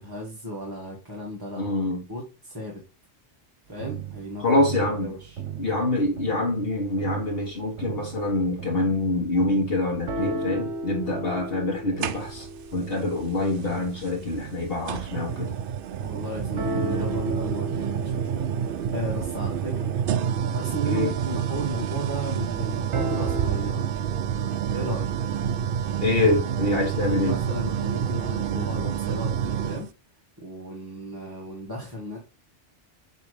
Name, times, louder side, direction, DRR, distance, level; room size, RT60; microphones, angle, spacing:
voice 1, 0.0-2.8 3.7-4.4 5.0-5.4 16.0-19.9 20.5-24.2 24.7-25.2 27.0-29.9 30.4-32.2, equal, 20° right, 1.6 m, -35 dB
voice 2, 1.6-2.0 4.4-5.1 5.6-15.6 20.9-21.1 26.0-27.4, left 2 dB, 55° left, 1.6 m, -25 dB
sound 1, 3.8-6.7 7.0-15.6 15.9-23.5, right 3 dB, 80° right, 1.3 m, -35 dB
sound 2, 12.0-12.6 14.0-14.1 14.9-29.9, right 8 dB, 60° right, 0.7 m, -28 dB
8.3 x 3.1 x 4.9 m
omnidirectional pair, 1.2 m